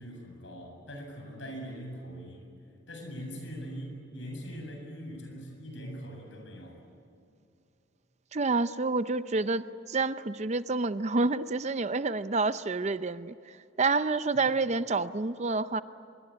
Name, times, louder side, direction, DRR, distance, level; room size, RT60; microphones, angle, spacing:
voice 1, 0.0-2.6 2.9-6.8 14.3-14.4, equal, 70° left, 2 dB, 7.6 m, -42 dB
voice 2, 8.3-15.8, right 3 dB, 35° right, 13 dB, 0.6 m, -28 dB
25.0 x 23.0 x 9.8 m, 2.5 s
head